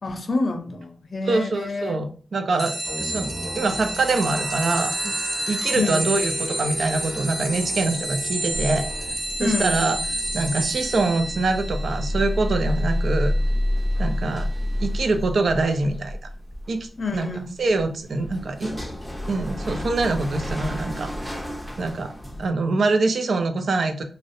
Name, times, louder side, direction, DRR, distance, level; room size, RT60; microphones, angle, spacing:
voice 1, 0.0-2.0 5.7-6.1 9.4-9.8 17.0-17.5, left 3 dB, 60° left, 0.5 m, -27 dB
voice 2, 1.3-5.1 5.5-8.8 9.4-10.0 10.3-13.3 14.0-14.5 14.8-16.2 16.7-17.3 17.6-18.7 19.3-21.4 21.8-22.1 22.4-24.0, right 3 dB, 75° right, 0.4 m, -24 dB
sound 1, 2.6-14.7, right 1 dB, 20° right, 0.9 m, -30 dB
sound 2, 2.8-9.1, equal, 35° right, 1.3 m, -38 dB
sound 3, 8.5-22.5, left 1 dB, 5° left, 0.5 m, -29 dB
2.5 x 2.0 x 2.6 m
cardioid pair, 60°, 0 cm